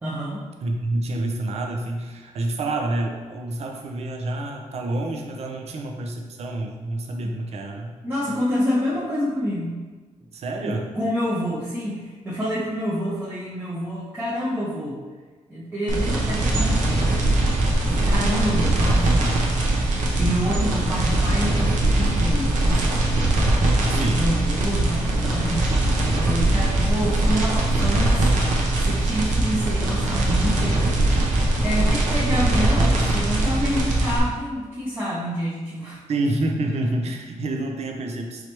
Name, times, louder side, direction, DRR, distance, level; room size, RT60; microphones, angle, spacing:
voice 1, 0.0-0.5 7.2-7.3 8.0-9.8 10.6-15.0 15.5-17.5 17.9-19.4 20.2-23.1 23.8-25.7 26.1-28.5 28.8-31.1 31.6-36.0, equal, 15° right, -9 dB, 0.7 m, -28 dB
voice 2, 0.6-7.9 10.3-10.9 17.9-18.2 23.9-24.3 36.1-38.5, right 2 dB, 55° right, 1 dB, 0.5 m, -28 dB
sound 1, 15.9-34.2, right 2 dB, 85° right, 0.8 m, -21 dB
4.7 x 3.2 x 2.9 m, 1.4 s
wide cardioid pair, 130°, 13 cm